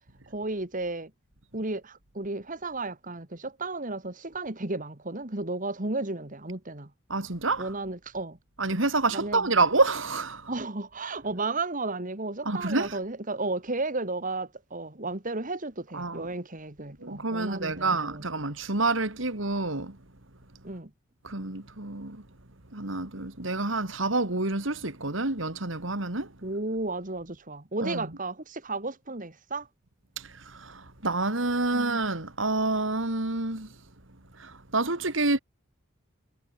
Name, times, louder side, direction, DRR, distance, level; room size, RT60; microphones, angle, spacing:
voice 1, 0.3-1.1 1.5-6.9 7.6-8.4 9.1-9.5 10.5-18.2 20.6-20.9 26.4-29.7 31.7-32.0, right 2 dB, 40° right, 2.2 m, -33 dB
voice 2, 7.1-7.7 8.6-10.5 12.4-13.0 15.9-16.3 17.0-20.0 21.2-22.2 22.7-26.3 27.8-28.1 30.2-33.7 34.4-35.4, right 3 dB, 65° right, 2.8 m, -28 dB
head